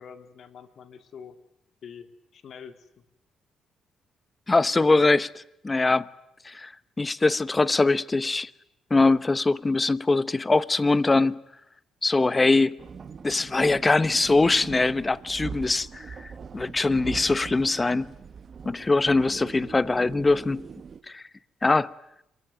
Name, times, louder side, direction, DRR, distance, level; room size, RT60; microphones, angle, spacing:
voice 1, 0.0-1.4 1.8-3.0 18.7-19.1, left 7 dB, 60° left, 2.7 m, -46 dB
voice 2, 4.5-6.0 6.4-6.7 7.0-8.5 8.9-11.4 12.0-12.8 13.2-16.2 16.5-18.1 18.6-20.6 21.1-21.2 21.6-21.9, left 3 dB, 20° left, 1.0 m, -22 dB
sound 1, 12.8-21.0, right 6 dB, 45° right, 1.4 m, -41 dB
27.0 x 22.5 x 9.3 m
cardioid pair, 90°, 0 cm